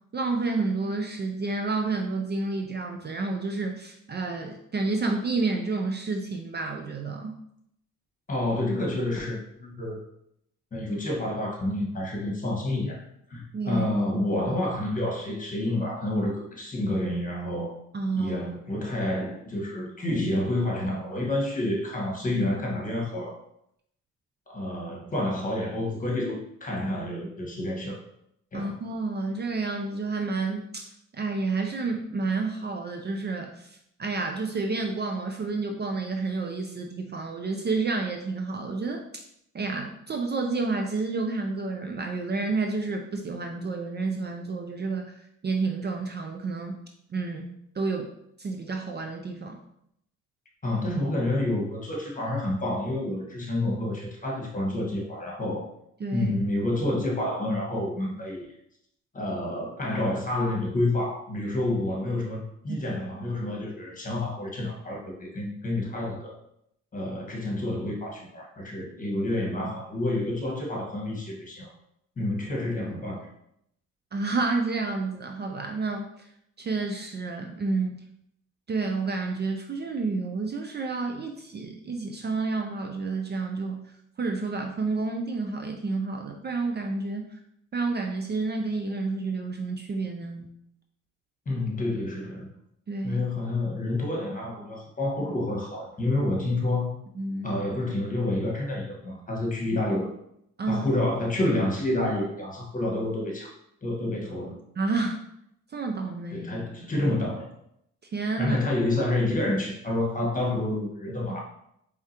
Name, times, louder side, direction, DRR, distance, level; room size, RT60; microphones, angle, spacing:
voice 1, 0.1-7.4 13.5-13.9 17.9-18.4 28.5-30.9 31.1-39.0 39.5-45.1 45.4-46.8 47.1-48.1 48.4-49.6 56.0-56.3 62.7-62.8 74.1-76.3 76.6-78.0 78.7-83.8 84.2-87.4 87.7-90.5 92.9-93.2 97.2-97.5 100.6-100.9 104.8-105.2 105.7-106.5 108.1-108.6, right 3 dB, 35° right, 3 dB, 0.5 m, -30 dB
voice 2, 8.3-10.0 10.7-13.0 13.3-17.8 18.2-23.4 24.5-28.0 28.5-28.8 50.6-55.7 56.1-58.4 59.1-66.4 66.9-71.7 72.2-73.3 91.4-92.5 93.0-97.0 97.4-100.1 100.7-103.5 103.8-104.6 106.3-107.5 108.4-111.4, left 1 dB, 25° left, -1 dB, 1.4 m, -29 dB
4.7 x 3.5 x 2.9 m, 0.75 s
cardioid pair, 90°, 30 cm